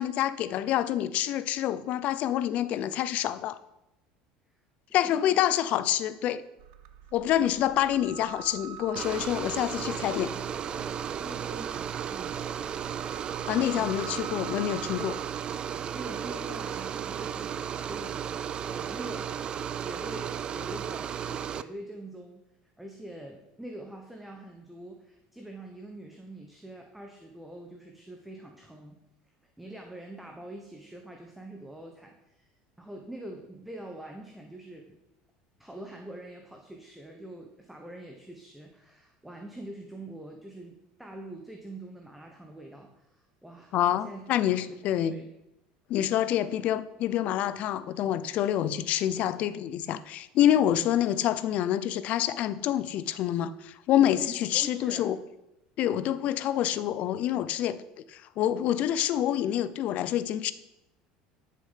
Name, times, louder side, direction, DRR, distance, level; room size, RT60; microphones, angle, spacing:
voice 1, 0.0-3.6 4.9-6.4 7.1-10.3 13.5-15.2 43.7-45.2 45.9-55.2 55.8-57.8 58.1-60.5, left 11 dB, 50° left, 0.6 m, -27 dB
voice 2, 4.9-5.4 9.8-12.5 13.5-14.1 15.9-19.3 19.8-22.4 22.8-29.0 29.6-32.5 32.8-35.0 35.6-44.8 45.0-45.3 45.9-46.1 54.2-55.1, right 1 dB, 5° right, 1.1 m, -44 dB
sound 1, 6.6-15.3, right 9 dB, 80° right, 0.8 m, -46 dB
sound 2, 9.0-21.6, right 8 dB, 30° right, 0.4 m, -34 dB
11.5 x 6.9 x 5.7 m
cardioid pair, 145°, 3 cm